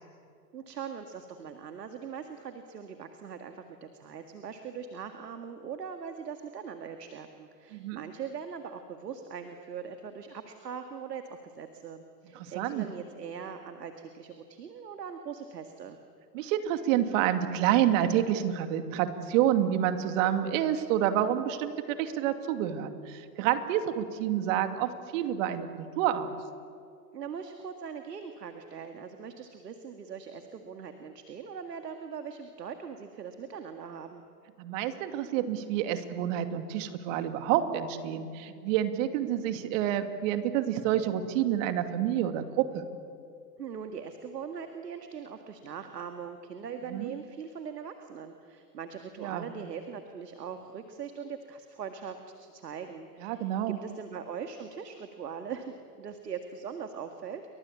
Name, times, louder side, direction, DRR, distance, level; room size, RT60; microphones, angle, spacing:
voice 1, 0.5-16.0 27.1-34.2 43.6-57.4, right 6 dB, 80° right, 7 dB, 2.1 m, -41 dB
voice 2, 7.7-8.0 12.4-12.9 16.3-26.4 34.6-42.8 46.9-47.1 49.2-49.5 53.2-53.8, right 11 dB, 50° right, 8 dB, 2.7 m, -28 dB
29.5 x 24.0 x 8.4 m, 2.3 s
hypercardioid pair, 95°, 48 cm